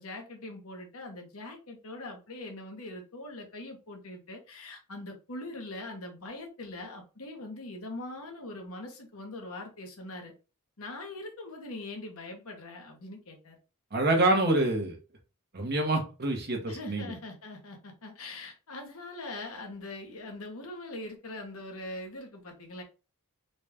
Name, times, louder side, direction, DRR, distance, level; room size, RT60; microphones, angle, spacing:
voice 1, 0.0-10.3 10.8-13.6 16.7-22.8, left 2 dB, 70° left, 1.1 m, -42 dB
voice 2, 13.9-15.0 15.5-17.1, right 2 dB, 45° right, 1.1 m, -26 dB
4.0 x 2.4 x 3.4 m
head